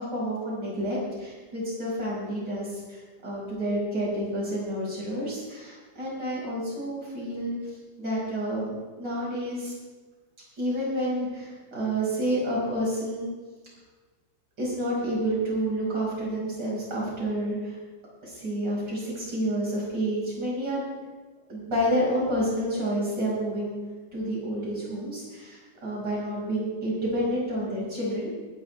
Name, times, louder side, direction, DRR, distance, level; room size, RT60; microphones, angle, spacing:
voice 1, 0.1-7.6 8.0-9.7 10.6-13.3 14.6-17.8 18.2-20.8 21.5-23.8 24.1-28.3, right 1 dB, 70° right, -6 dB, 6.5 m, -29 dB
20.0 x 12.5 x 3.5 m, 1.3 s
omnidirectional pair, 2.0 m